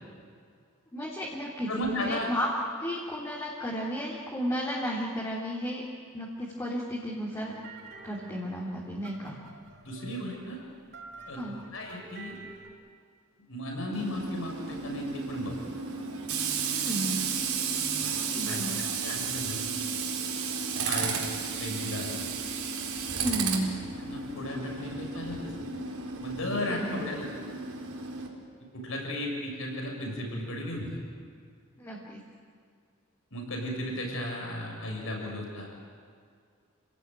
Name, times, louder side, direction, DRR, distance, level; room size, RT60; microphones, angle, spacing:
voice 1, 0.9-2.5 2.8-5.8 6.1-7.5 8.0-9.3 11.3-11.6 16.6-17.2 18.3-18.8 23.1-23.7 26.7-27.1 31.8-32.2, equal, 15° left, -5 dB, 3.4 m, -33 dB
voice 2, 1.7-2.3 9.8-10.6 11.3-11.4 11.7-12.3 13.5-15.6 18.0-18.6 19.0-19.6 20.8-21.2 21.6-22.1 24.0-25.7 26.2-27.4 28.7-31.0 33.3-35.9, left 1 dB, 70° left, 0 dB, 6.9 m, -35 dB
sound 1, 7.3-12.7, right 3 dB, 55° right, 6.5 m, -49 dB
Tools, 13.9-28.3, right 5 dB, 90° right, 4.3 m, -33 dB
29.5 x 18.5 x 9.1 m, 2.2 s
head